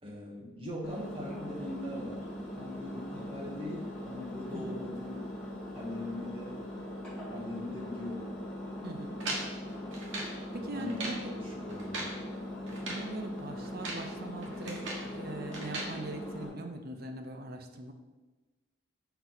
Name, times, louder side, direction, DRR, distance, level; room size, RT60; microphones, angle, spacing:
voice 1, 0.0-2.3 2.6-5.3 5.7-6.6 7.3-8.3 10.5-12.1, left 1 dB, 30° right, -3 dB, 1.3 m, -41 dB
Engine, 0.8-16.5, left 1 dB, 5° left, 2.0 m, -41 dB
voice 2, 8.8-9.2 10.5-11.3 12.8-14.8 15.1-17.9, right 2 dB, 50° right, 5 dB, 0.6 m, -41 dB
sound 1, 9.2-10.4 10.8-11.2 11.7-12.2 12.7-13.1 13.6-14.1 14.4-15.1 15.5-15.9, right 2 dB, 80° right, 1.4 m, -39 dB
5.4 x 4.5 x 4.0 m, 1.2 s
head